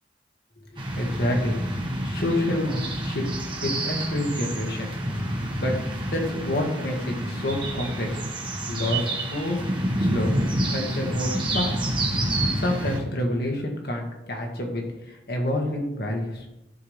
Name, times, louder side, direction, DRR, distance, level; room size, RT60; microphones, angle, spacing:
voice 1, 0.7-1.6 2.0-3.2 3.6-4.9 5.6-5.7 6.1-8.2 8.7-10.3 10.7-11.8 12.5-16.4, left 1 dB, 60° left, 1 dB, 1.7 m, -28 dB
sound 1, 0.8-13.0, right 1 dB, 30° right, 1.4 m, -28 dB
14.0 x 4.8 x 3.4 m, 0.94 s
head